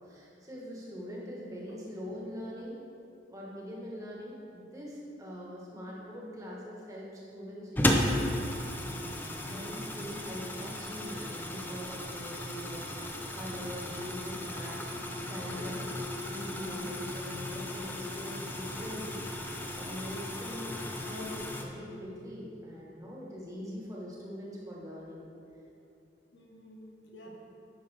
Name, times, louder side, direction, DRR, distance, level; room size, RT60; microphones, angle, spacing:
voice 1, 0.0-2.8 3.3-8.1 8.8-13.0 13.3-19.2 19.7-25.3, equal, 20° right, -5 dB, 1.4 m, -42 dB
sound 1, 7.8-21.6, left 1 dB, 10° left, 0.5 m, -35 dB
voice 2, 15.4-15.8 26.3-27.3, equal, 85° left, -1 dB, 1.2 m, -53 dB
9.8 x 5.6 x 3.4 m, 2.7 s
head